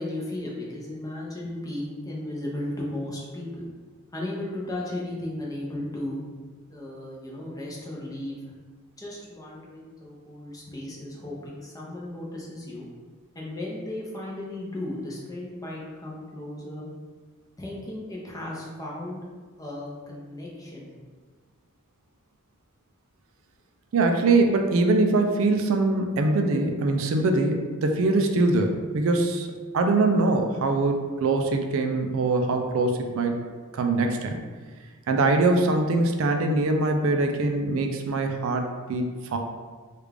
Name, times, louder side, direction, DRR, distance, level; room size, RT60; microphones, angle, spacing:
voice 1, 0.0-3.7 4.1-6.2 6.7-8.5 9.0-12.9 13.3-16.8 17.6-19.3 19.6-20.9, left 1 dB, 15° left, -4 dB, 0.6 m, -35 dB
voice 2, 23.9-29.5 29.7-33.4 33.7-34.4 35.1-39.4, right 2 dB, 65° right, 4 dB, 0.4 m, -23 dB
3.3 x 2.4 x 3.3 m, 1.5 s
head